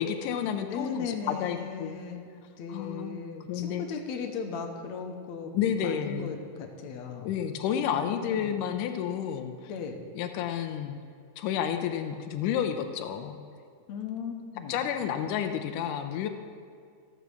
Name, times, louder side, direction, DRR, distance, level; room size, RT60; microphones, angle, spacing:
voice 1, 0.0-1.9 2.7-3.2 3.5-3.8 5.5-6.3 7.2-9.7 10.1-11.0 11.4-13.4 14.7-16.3, left 9 dB, 90° left, 6 dB, 2.2 m, -30 dB
voice 2, 0.6-2.2 2.6-5.5 5.8-7.4 7.8-8.6 9.7-10.0 13.9-14.8, left 5 dB, 70° left, 2 dB, 2.1 m, -37 dB
13.5 x 6.2 x 6.9 m, 2.2 s
omnidirectional pair, 3.6 m